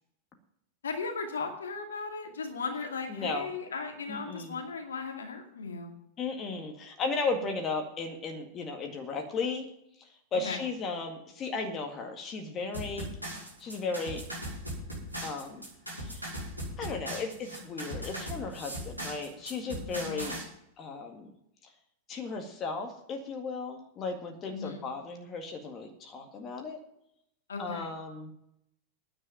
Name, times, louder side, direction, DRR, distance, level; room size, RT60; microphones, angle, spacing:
voice 1, 0.8-5.9 10.4-10.6 20.0-20.3 24.5-24.8 27.5-27.9, left 4 dB, 70° left, 2 dB, 2.3 m, -36 dB
voice 2, 3.1-3.5 4.1-4.6 6.2-9.7 10.0-13.1 13.6-14.2 15.2-15.7 16.0-16.3 16.8-20.4 20.8-21.3 21.6-21.7 22.1-26.8 27.6-28.3, left 4 dB, 30° left, 3 dB, 1.9 m, -35 dB
sound 1, 12.7-20.4, equal, 90° right, 5.9 m, -38 dB
9.8 x 8.8 x 9.1 m, 0.76 s
figure-of-eight pair, 90°, 0 cm